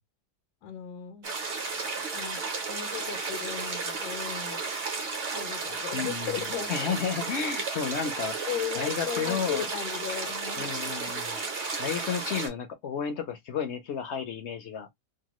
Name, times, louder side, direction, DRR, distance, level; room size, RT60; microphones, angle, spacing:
voice 1, 0.6-1.5 2.1-4.6 5.3-6.9 8.5-10.7, left 9 dB, 85° left, 1.2 m, -37 dB
sound 1, 1.2-12.5, right 4 dB, 45° right, 0.9 m, -33 dB
voice 2, 5.9-8.4 8.7-9.7 10.6-11.4 11.8-14.9, left 7 dB, 65° left, 0.7 m, -32 dB
2.9 x 2.2 x 2.9 m
omnidirectional pair, 1.7 m